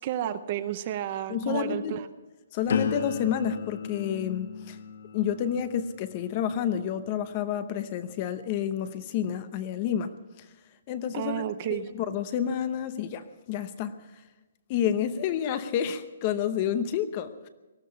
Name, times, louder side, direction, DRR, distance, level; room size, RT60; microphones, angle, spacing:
voice 1, 0.0-2.1 11.1-11.9, right 11 dB, 25° right, 12 dB, 0.6 m, -31 dB
voice 2, 1.3-2.0 2.5-4.8 5.1-10.5 10.9-11.3 11.7-13.9 14.7-17.5, left 9 dB, 20° left, 12 dB, 0.7 m, -29 dB
sound 1, 2.7-8.5 9.1-9.5, left 6 dB, 50° left, 1.6 m, -36 dB
19.0 x 13.5 x 5.8 m, 1.2 s
hypercardioid pair, 180°, 0 cm